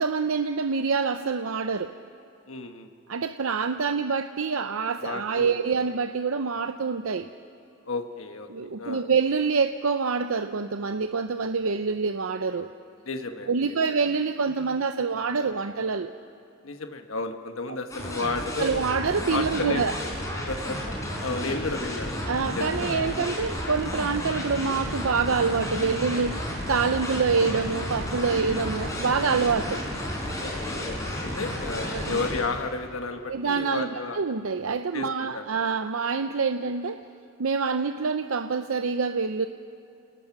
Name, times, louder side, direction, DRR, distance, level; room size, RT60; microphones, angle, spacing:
voice 1, 0.0-1.9 3.1-7.3 8.5-12.7 13.5-16.1 18.6-20.0 22.3-29.8 31.9-32.2 33.3-37.0 37.4-39.5, right 5 dB, 80° right, 8 dB, 0.6 m, -26 dB
voice 2, 2.5-2.9 5.0-5.5 7.9-9.1 13.1-13.8 16.6-18.8 19.3-19.8 20.5-20.8 21.2-23.0 28.4-28.7 30.4-34.2 34.9-35.4, left 3 dB, 80° left, 5 dB, 1.2 m, -33 dB
sound 1, 17.9-32.4, left 1 dB, 15° left, 4.4 m, -32 dB
29.0 x 18.5 x 5.9 m, 2.7 s
head